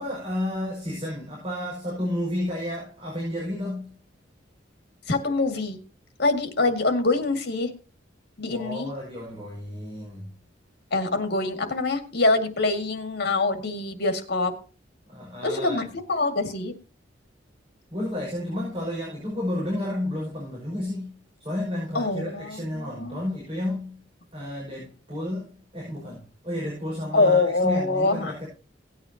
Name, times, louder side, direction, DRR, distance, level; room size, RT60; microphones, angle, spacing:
voice 1, 0.0-4.0 8.5-10.3 15.1-15.8 17.9-24.0 24.3-28.5, left 1 dB, 30° right, 5.6 m, -31 dB
voice 2, 5.1-5.8 6.2-7.7 8.4-8.9 10.9-14.5 15.4-16.7 21.9-23.2 27.1-28.3, left 3 dB, 60° left, 2.1 m, -24 dB
17.5 x 8.8 x 2.8 m
head